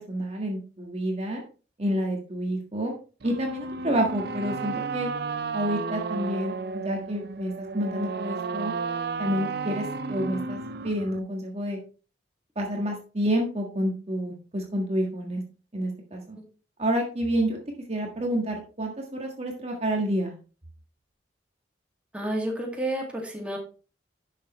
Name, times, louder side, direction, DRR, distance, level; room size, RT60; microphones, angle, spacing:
voice 1, 0.1-1.4 1.8-3.0 3.2-5.1 5.5-6.5 6.8-8.7 9.2-11.8 12.5-15.4 15.7-16.4 16.8-17.6 17.9-20.3, equal, 35° right, 1 dB, 1.6 m, -29 dB
sound 1, 3.2-11.2, right 4 dB, 60° right, 0.5 m, -33 dB
voice 2, 22.1-23.6, right 1 dB, 5° right, 0 dB, 2.2 m, -30 dB
11.0 x 6.6 x 3.1 m, 0.35 s
head